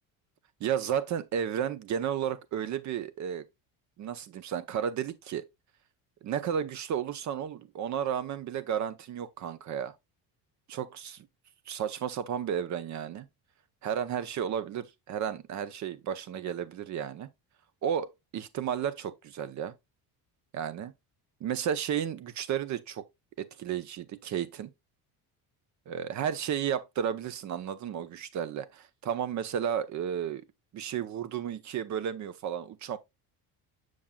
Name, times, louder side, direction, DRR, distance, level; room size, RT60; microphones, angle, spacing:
voice 1, 0.6-3.4 4.0-5.4 6.2-9.9 10.7-11.2 11.7-13.3 13.8-17.3 17.8-19.7 20.5-20.9 21.4-23.0 23.4-24.7 25.9-30.4 30.7-33.0, right 9 dB, 45° right, 0.7 m, -33 dB
7.2 x 6.4 x 2.3 m
cardioid pair, 155°, 40 cm